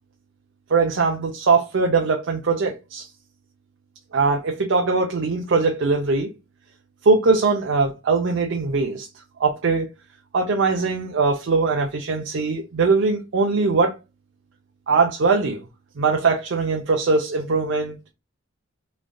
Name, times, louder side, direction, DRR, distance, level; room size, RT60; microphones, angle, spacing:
voice 1, 0.7-3.1 4.1-6.3 7.0-9.1 9.4-9.9 10.3-14.0 14.9-15.6 16.0-18.0, right 4 dB, 60° right, 0.5 m, -21 dB
3.2 x 2.5 x 2.2 m
head